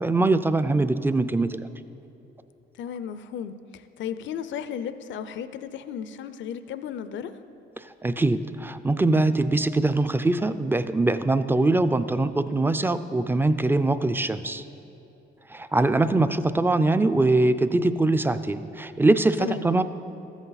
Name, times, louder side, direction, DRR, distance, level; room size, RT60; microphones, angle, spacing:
voice 1, 0.0-1.7 7.8-14.6 15.5-19.8, right 2 dB, 10° right, 11 dB, 0.4 m, -22 dB
voice 2, 2.8-7.3 19.4-19.7, left 8 dB, 70° left, 12 dB, 0.5 m, -34 dB
13.5 x 8.2 x 4.0 m, 2.8 s
cardioid pair, 90°, 20 cm